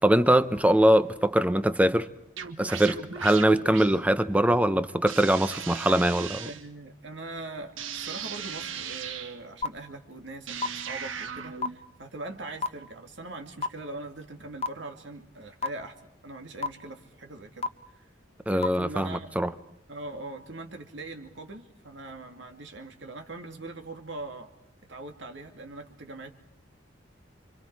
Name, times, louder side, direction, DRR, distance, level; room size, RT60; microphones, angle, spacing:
voice 1, 0.0-2.1 2.6-6.5 18.5-19.5, right 1 dB, 5° right, 12 dB, 0.8 m, -22 dB
sound 1, 2.4-4.0 5.1-6.7 7.8-9.4 10.5-11.9, right 7 dB, 85° right, 1.5 m, -37 dB
voice 2, 6.4-18.1 18.5-19.3 19.9-24.5 24.9-26.3, right 2 dB, 65° right, 5 dB, 2.4 m, -41 dB
sound 2, 9.6-9.7 10.6-10.7 11.6-11.7 12.6-12.7 13.6-13.7 14.6-14.7 15.6-15.7 16.6-16.7 17.6-17.7 18.6-18.7, left 4 dB, 30° left, 0.9 m, -26 dB
29.0 x 25.5 x 4.8 m, 0.82 s
head